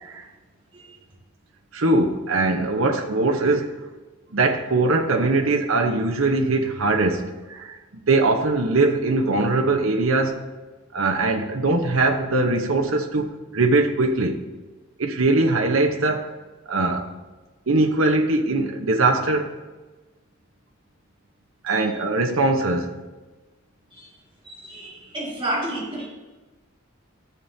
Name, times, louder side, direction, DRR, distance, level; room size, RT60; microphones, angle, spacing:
voice 1, 1.7-3.7 4.3-10.4 10.9-14.4 15.0-16.3 16.7-17.1 17.7-19.6 21.6-22.9, right 2 dB, 75° right, 0.9 m, -21 dB
voice 2, 24.4-26.1, right 1 dB, 25° right, 2.1 m, -31 dB
13.5 x 7.3 x 2.7 m
head